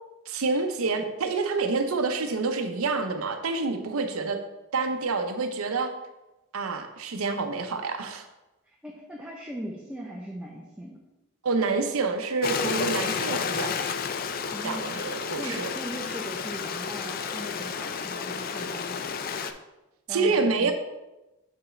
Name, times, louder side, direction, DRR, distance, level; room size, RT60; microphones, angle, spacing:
voice 1, 0.3-4.4 4.7-5.9 6.5-8.2 11.4-13.7 14.6-15.7 20.1-20.7, right 4 dB, 85° right, 6 dB, 0.7 m, -27 dB
voice 2, 8.6-11.0 14.5-15.0 15.4-19.2 20.1-20.7, equal, 5° right, -3 dB, 0.5 m, -39 dB
Stream, 12.4-19.5, left 6 dB, 40° left, 0.3 m, -31 dB
7.0 x 4.6 x 3.2 m, 1.0 s
head